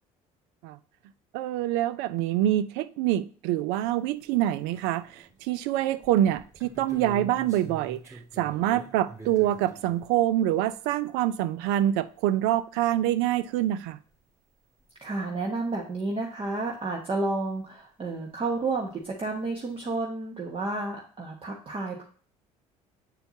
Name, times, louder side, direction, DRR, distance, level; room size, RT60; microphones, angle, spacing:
voice 1, 1.3-5.1 5.4-8.0 8.4-14.0, right 13 dB, 75° right, 0.5 m, -25 dB
sound 1, 3.8-3.9 4.3-5.4 5.8-10.1 12.7-12.8 13.0-13.1 14.1-14.2 14.8-14.9 18.5-18.6 18.8-19.2, right 2 dB, 15° right, 2.4 m, -45 dB
voice 2, 15.0-22.0, right 3 dB, 30° right, 1.2 m, -31 dB
8.3 x 4.4 x 2.7 m
hypercardioid pair, 65°, 17 cm